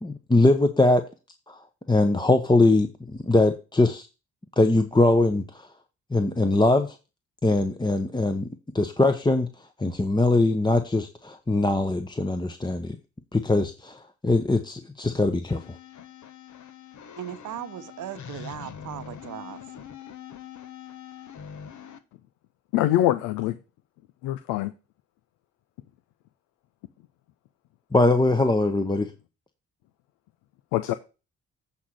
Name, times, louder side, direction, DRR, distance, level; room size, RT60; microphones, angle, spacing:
voice 1, 0.0-1.0 1.5-1.6 1.9-4.1 4.6-5.7 6.1-7.0 7.4-8.5 8.7-9.5 9.8-13.0 13.3-15.7 27.9-29.1, left 2 dB, 15° left, 1.0 m, -22 dB
sound 1, 15.5-22.0, left 8 dB, 60° left, 1.2 m, -43 dB
voice 2, 17.2-19.6, right 11 dB, 60° right, 0.9 m, -37 dB
voice 3, 22.7-23.6 24.2-24.7 30.7-30.9, left 13 dB, 75° left, 0.6 m, -23 dB
8.5 x 4.2 x 6.3 m
hypercardioid pair, 45°, 34 cm